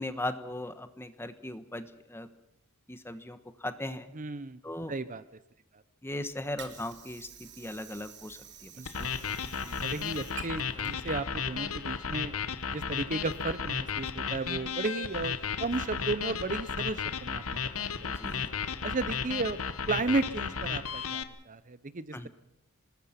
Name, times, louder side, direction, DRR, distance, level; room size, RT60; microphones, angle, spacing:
voice 1, 0.0-2.3 2.9-4.1 4.6-4.9 6.0-9.0 18.0-18.5 22.1-22.3, left 1 dB, 10° left, 11 dB, 1.2 m, -38 dB
voice 2, 4.1-4.6 4.9-5.2 5.7-5.8 8.7-12.3 12.7-18.2 18.8-19.6 19.9-22.3, right 3 dB, 35° right, 14 dB, 0.8 m, -34 dB
Water / Sink (filling or washing), 6.1-12.1, right 7 dB, 55° right, 3.1 m, -50 dB
sound 1, 8.9-21.2, left 6 dB, 70° left, 1.2 m, -34 dB
26.0 x 20.0 x 5.9 m, 0.80 s
head